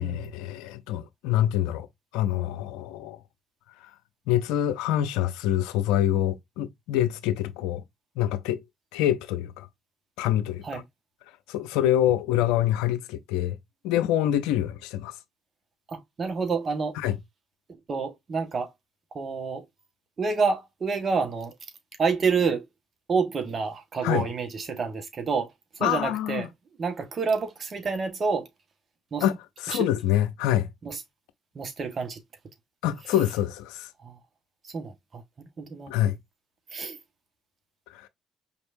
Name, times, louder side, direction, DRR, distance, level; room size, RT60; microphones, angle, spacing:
voice 1, 0.0-1.9 2.1-3.2 3.8-3.9 4.3-7.8 8.2-8.6 8.9-9.7 10.2-10.8 11.5-13.6 13.8-15.2 17.0-17.2 24.0-24.3 25.8-26.5 29.2-30.7 32.8-33.9 35.9-36.2 37.9-38.1, left 12 dB, 85° left, 0.6 m, -26 dB
voice 2, 15.9-17.0 17.9-18.7 19.1-19.7 20.2-21.5 22.0-22.6 23.1-26.5 26.8-28.5 29.1-29.3 29.7-29.9 30.8-31.0 31.5-32.2 34.0-34.2 34.6-35.9 36.7-37.0, right 5 dB, 45° right, 1.4 m, -28 dB
5.1 x 3.4 x 2.6 m
hypercardioid pair, 55°, 0 cm